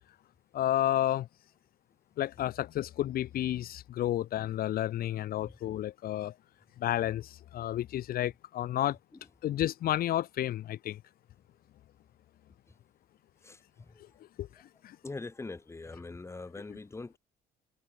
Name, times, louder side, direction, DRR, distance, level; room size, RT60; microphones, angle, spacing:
voice 1, 0.5-1.3 2.2-6.3 6.8-9.0 9.4-11.0 14.4-14.5 14.8-15.0, left 13 dB, 60° left, 1.1 m, -31 dB
voice 2, 13.4-14.0 15.0-17.2, left 3 dB, 15° left, 1.9 m, -43 dB
cardioid pair, 110°, 17 cm